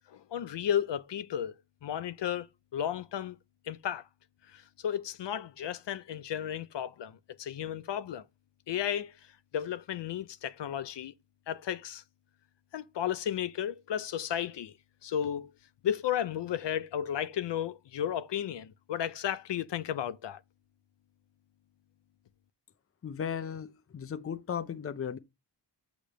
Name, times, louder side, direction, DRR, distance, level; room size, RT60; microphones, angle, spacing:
voice 1, 0.1-1.5 1.8-2.5 2.7-3.4 3.7-4.0 4.5-8.2 8.7-9.2 9.5-11.1 11.5-12.0 12.7-14.7 15.0-15.5 15.8-20.4, left 10 dB, 70° left, 0.6 m, -33 dB
voice 2, 23.0-25.2, left 7 dB, 30° left, 0.5 m, -36 dB
8.3 x 3.0 x 6.3 m
wide cardioid pair, 145°, 43 cm